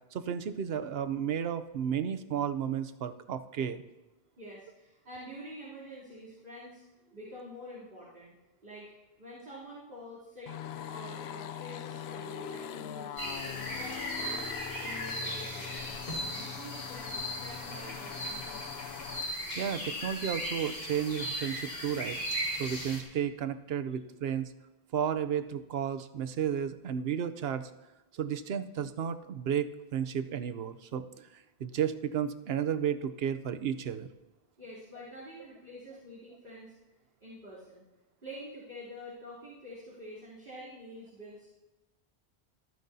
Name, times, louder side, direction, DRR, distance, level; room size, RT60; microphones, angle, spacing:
voice 1, 0.1-3.8 19.6-22.2 22.6-24.5 24.9-27.7 28.1-34.1, right 8 dB, 75° right, 11 dB, 0.9 m, -33 dB
voice 2, 4.4-6.8 7.1-8.3 8.6-8.9 9.2-16.0 16.3-19.3 34.6-36.7 37.2-37.8 38.2-41.5, equal, 55° right, -11 dB, 3.4 m, -47 dB
sound 1, 10.5-19.3, left 9 dB, 80° left, 0.8 m, -42 dB
sound 2, 13.2-23.0, equal, 55° left, 2.4 m, -37 dB
25.0 x 9.2 x 2.7 m, 1.1 s
omnidirectional pair, 1.1 m